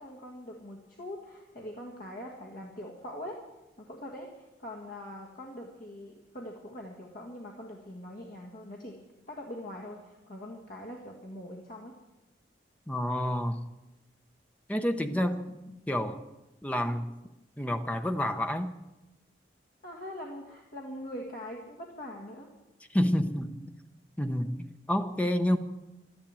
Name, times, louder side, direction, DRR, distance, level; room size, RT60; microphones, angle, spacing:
voice 1, 0.0-3.4 3.8-9.0 9.3-11.9 19.8-22.5, left 1 dB, 50° left, -1 dB, 1.7 m, -43 dB
voice 2, 12.9-13.6 14.7-16.2 16.6-17.1 17.6-18.7 22.9-23.6 24.2-25.6, left 1 dB, 5° left, 8 dB, 0.7 m, -29 dB
13.0 x 10.0 x 8.9 m, 1.0 s
head